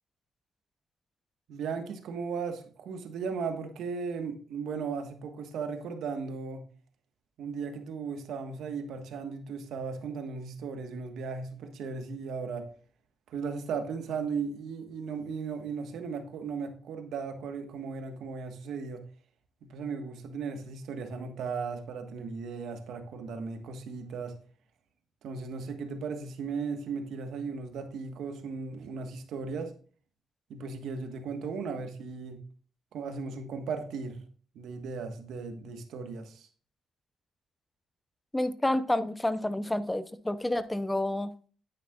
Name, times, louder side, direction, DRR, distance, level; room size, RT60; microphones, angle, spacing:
voice 1, 1.5-6.6 7.4-12.7 13.3-19.0 19.6-24.3 25.2-29.7 30.5-32.4 32.9-34.2 34.5-36.5, right 5 dB, 75° right, 1.4 m, -36 dB
voice 2, 38.3-41.3, left 1 dB, 10° left, 0.6 m, -29 dB
9.6 x 9.2 x 2.4 m
cardioid pair, 90°, 0 cm